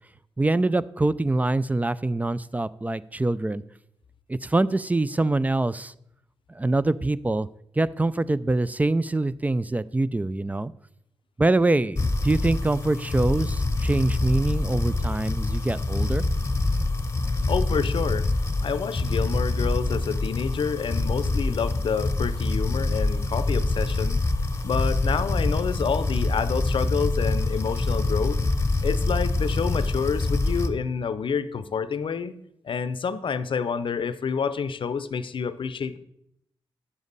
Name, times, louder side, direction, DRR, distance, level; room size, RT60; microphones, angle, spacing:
voice 1, 0.4-3.6 4.3-5.9 6.5-7.5 7.8-10.7 11.4-16.2, right 2 dB, 15° right, 17 dB, 0.4 m, -24 dB
sound 1, 12.0-30.7, left 2 dB, 25° left, 0.9 m, -25 dB
voice 2, 17.5-18.3 18.6-24.2 24.6-28.4 28.8-32.3 32.6-36.0, left 6 dB, 55° left, 14 dB, 0.6 m, -28 dB
10.0 x 7.1 x 4.0 m, 0.77 s
supercardioid pair, 50°, 10 cm